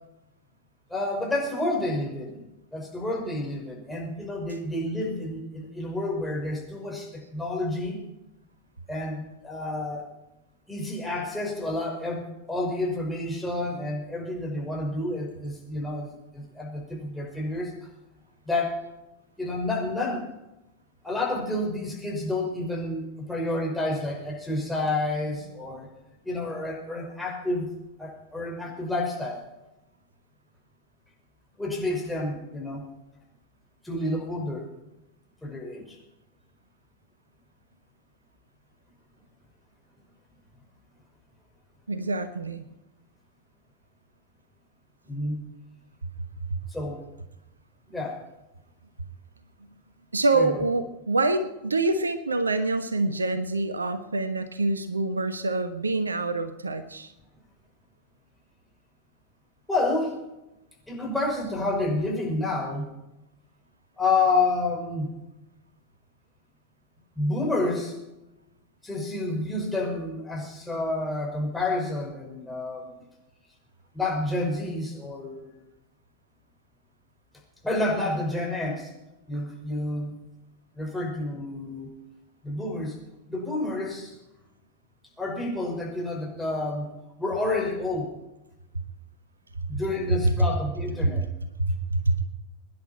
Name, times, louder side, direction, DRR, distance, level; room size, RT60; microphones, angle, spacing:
voice 1, 0.9-2.4 2.7-8.0 8.9-10.1 10.7-17.7 18.5-18.8 19.4-20.3 21.0-25.9 26.2-27.7 28.0-29.4 31.6-32.8 33.8-34.7 35.4-36.0 45.1-45.4 46.7-47.1 47.9-48.2 50.3-50.5 59.7-60.2 60.9-62.9 64.0-65.1 67.2-68.0 68.8-72.9 73.9-75.5 77.6-78.9 79.3-80.2 80.8-81.9 82.4-83.0 83.3-84.1 85.2-86.9 87.2-88.2 89.7-91.2, left 2 dB, 5° left, -1 dB, 5.4 m, -29 dB
voice 2, 41.9-42.6 50.1-57.1 90.2-90.3 91.6-92.2, right 2 dB, 75° right, 11 dB, 1.1 m, -26 dB
23.5 x 10.5 x 4.5 m, 0.92 s
figure-of-eight pair, 90°, 0 cm